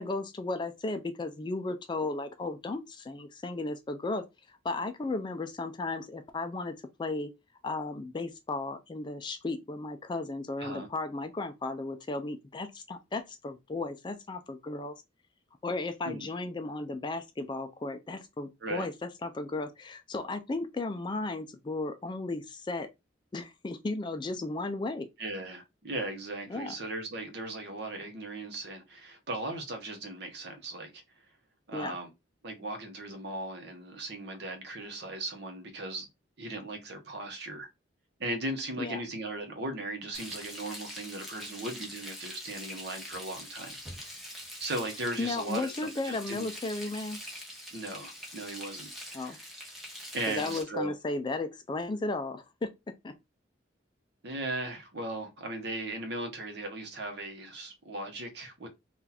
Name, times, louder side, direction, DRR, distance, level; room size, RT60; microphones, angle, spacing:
voice 1, 0.0-7.3 7.6-14.9 15.6-22.9 23.3-25.1 26.5-26.7 31.7-32.0 38.8-39.0 45.2-47.2 49.1-49.4 50.3-52.7 53.0-53.1, left 2 dB, 25° left, 0.3 m, -35 dB
voice 2, 25.2-31.0 31.7-32.1 32.4-36.1 36.4-37.7 38.2-43.8 44.6-45.7 46.0-46.5 47.7-49.5 50.1-50.9 54.2-58.7, right 2 dB, 55° right, 0.9 m, -37 dB
Frying (food), 40.1-50.6, equal, ahead, 0.8 m, -44 dB
2.8 x 2.4 x 3.8 m
head